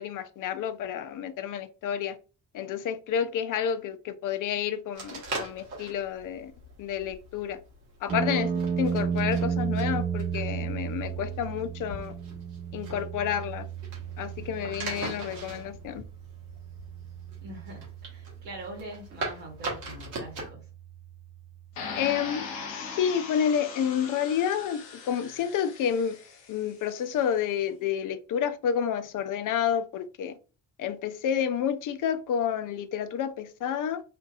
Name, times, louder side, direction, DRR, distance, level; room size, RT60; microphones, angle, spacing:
voice 1, 0.0-2.2 2.5-6.5 6.8-7.6 8.0-8.5 8.8-12.1 12.7-13.7 14.2-16.0 21.9-26.2 26.5-30.4 30.8-34.0, left 8 dB, 40° left, 0.5 m, -30 dB
sound 1, 4.9-20.5, right 2 dB, 85° right, 0.9 m, -41 dB
sound 2, 8.1-22.1, right 7 dB, 20° right, 0.4 m, -34 dB
voice 2, 17.4-20.7, right 1 dB, 70° right, 1.1 m, -43 dB
sound 3, 21.8-26.8, left 5 dB, 85° left, 0.7 m, -40 dB
2.6 x 2.5 x 2.5 m
hypercardioid pair, 40°, 49 cm